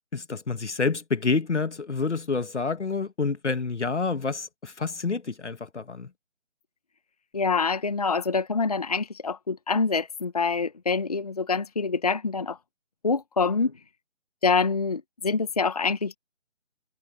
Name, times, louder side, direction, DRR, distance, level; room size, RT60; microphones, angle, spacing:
voice 1, 0.1-6.1, left 4 dB, 65° left, 1.9 m, -28 dB
voice 2, 7.3-12.6 13.0-13.7 14.4-16.2, left 4 dB, 30° left, 1.1 m, -25 dB
figure-of-eight pair, 165°, 38 cm